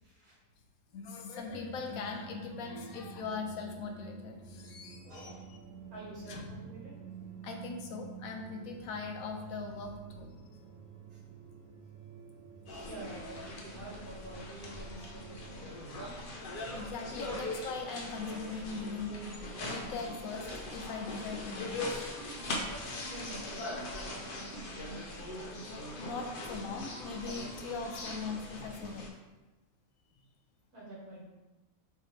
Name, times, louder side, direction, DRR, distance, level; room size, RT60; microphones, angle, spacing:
voice 1, 0.0-0.4 5.0-5.4 5.9-6.9 11.1-11.2 12.8-15.7 23.1-24.7 30.7-31.2, right 2 dB, 85° right, -6 dB, 2.0 m, -48 dB
voice 2, 0.9-5.3 6.3-6.5 7.4-10.3 12.8-12.9 16.7-22.1 26.0-29.1, left 4 dB, 75° left, 3 dB, 1.0 m, -40 dB
sound 1, 1.4-15.5, right 6 dB, 25° right, 0.4 m, -50 dB
sound 2, 12.7-29.1, left 1 dB, 50° left, 0.6 m, -41 dB
5.6 x 2.8 x 3.1 m, 1.1 s
omnidirectional pair, 1.5 m